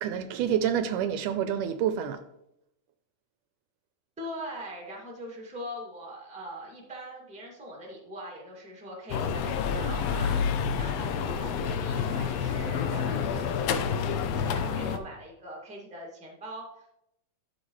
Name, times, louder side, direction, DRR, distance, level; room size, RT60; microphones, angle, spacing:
voice 1, 0.0-2.2, right 9 dB, 80° right, 2.0 m, -28 dB
voice 2, 4.2-13.5 14.4-16.9, equal, 5° right, 1.3 m, -42 dB
sound 1, 9.1-15.0, left 6 dB, 85° left, 1.4 m, -28 dB
11.5 x 6.7 x 3.2 m
omnidirectional pair, 3.8 m